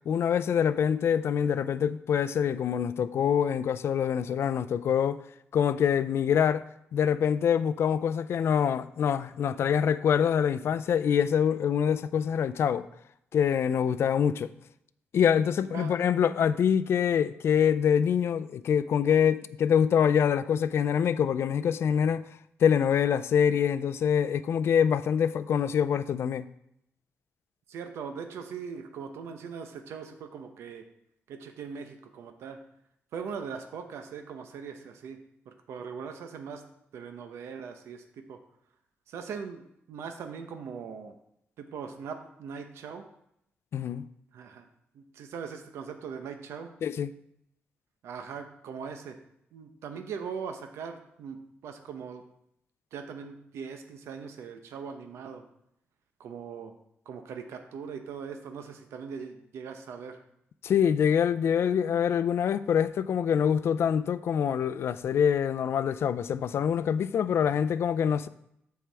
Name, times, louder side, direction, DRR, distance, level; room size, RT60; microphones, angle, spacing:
voice 1, 0.1-5.2 5.5-12.9 13.3-14.5 15.1-22.3 22.6-26.4 43.7-44.0 46.8-47.1 60.6-68.3, left 8 dB, 70° left, 0.4 m, -25 dB
voice 2, 27.7-30.9 31.3-32.6 33.1-35.2 35.5-36.6 36.9-38.4 39.1-41.2 41.6-43.1 44.3-44.7 44.9-46.7 48.0-49.2 49.5-52.2 52.9-55.4 56.2-56.7 57.1-60.2, right 6 dB, 85° right, 0.8 m, -40 dB
14.0 x 4.6 x 3.5 m
cardioid pair, 70°, 4 cm